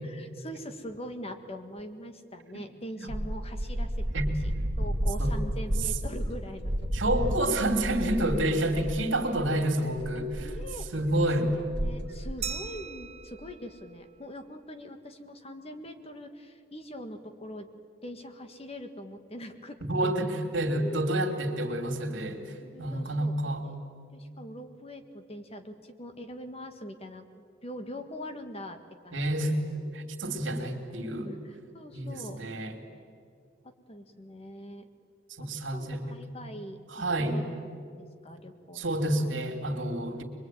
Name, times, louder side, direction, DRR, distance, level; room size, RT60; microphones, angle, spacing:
voice 1, 0.0-4.2 4.8-6.7 10.1-10.9 11.2-11.3 11.5-17.7 18.0-20.1 22.6-23.3 23.6-23.8 24.1-27.2 27.6-28.8 29.0-29.6 31.3-32.4 33.6-34.9 35.4-36.8 37.2-37.7 38.0-38.8, equal, 30° left, 7 dB, 1.7 m, -43 dB
sound 1, 3.1-9.0 9.4-9.5 9.8-12.8, equal, 65° right, 1.9 m, -32 dB
voice 2, 6.9-10.5 10.9-11.5 19.9-23.6 29.1-29.5 29.9-31.3 31.9-32.8 35.4-36.0 36.4-36.5 36.9-37.4 38.7-40.2, right 1 dB, 85° right, 3 dB, 3.0 m, -29 dB
Glass, 12.4-14.9, right 7 dB, 35° right, 0.8 m, -41 dB
23.5 x 23.0 x 9.3 m, 2.4 s
head